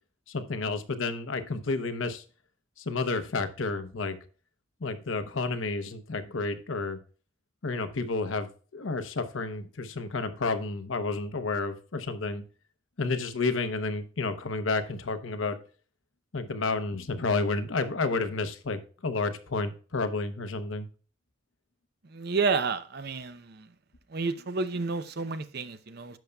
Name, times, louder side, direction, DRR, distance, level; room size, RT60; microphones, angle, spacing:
voice 1, 0.3-2.2 2.8-4.2 4.8-7.0 7.6-12.4 13.0-15.6 16.3-20.9, left 3 dB, 85° left, 10 dB, 0.8 m, -31 dB
voice 2, 22.0-23.7 24.1-26.2, right 4 dB, 55° right, 11 dB, 0.6 m, -30 dB
10.5 x 6.7 x 2.3 m, 0.38 s
head